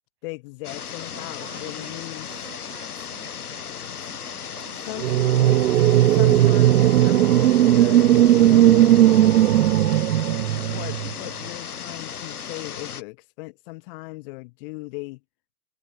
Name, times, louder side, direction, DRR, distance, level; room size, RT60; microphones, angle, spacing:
voice 1, 0.2-2.3 4.9-5.6 6.1-8.9 10.3-15.2, left 25 dB, 40° left, 1.1 m, -38 dB
sound 1, 0.6-13.0, left 7 dB, 90° left, 2.4 m, -36 dB
voice 2, 1.1-2.0 2.2-3.7 4.0-5.0, right 20 dB, 50° right, 6.6 m, -49 dB
sound 2, 5.0-11.1, right 13 dB, 90° right, 0.5 m, -17 dB
hypercardioid pair, 130°, 44 cm